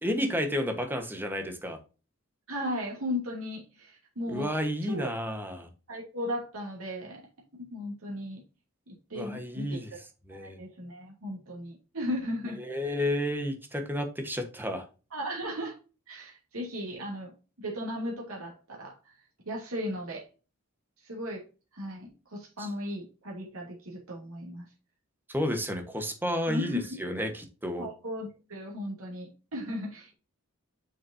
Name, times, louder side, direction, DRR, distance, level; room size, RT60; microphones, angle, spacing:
voice 1, 0.0-1.8 4.3-5.7 9.1-9.9 10.3-10.6 12.6-14.8 22.6-22.7 25.3-27.9, equal, 10° right, 5 dB, 1.3 m, -31 dB
voice 2, 2.5-4.5 4.8-5.1 5.9-7.3 7.7-8.4 8.9-9.8 10.3-12.6 15.1-15.8 16.1-17.3 17.6-19.1 19.5-20.2 21.0-21.4 21.7-24.7 26.5-26.9 27.8-30.1, left 1 dB, 85° right, -2 dB, 2.8 m, -36 dB
7.2 x 6.4 x 2.8 m, 0.33 s
head